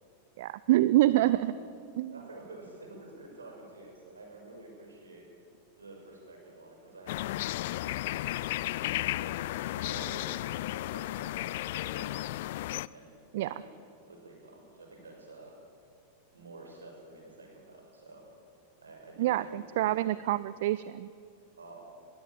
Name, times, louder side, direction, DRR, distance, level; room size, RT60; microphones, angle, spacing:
voice 1, 0.4-1.5 2.0-2.1 13.3-13.5 19.2-21.1, right 15 dB, 55° right, 17 dB, 0.4 m, -26 dB
voice 2, 1.1-1.5 2.1-5.2 5.8-7.3 7.7-8.4 9.1-12.3 12.9-13.7 14.0-15.5 16.3-18.2 18.8-20.2 21.6-21.9, right 2 dB, 75° right, 0 dB, 6.0 m, -50 dB
sound 1, 7.1-12.9, left 16 dB, 55° left, 0.4 m, -34 dB
21.0 x 16.0 x 8.8 m, 2.4 s
figure-of-eight pair, 90°, 0 cm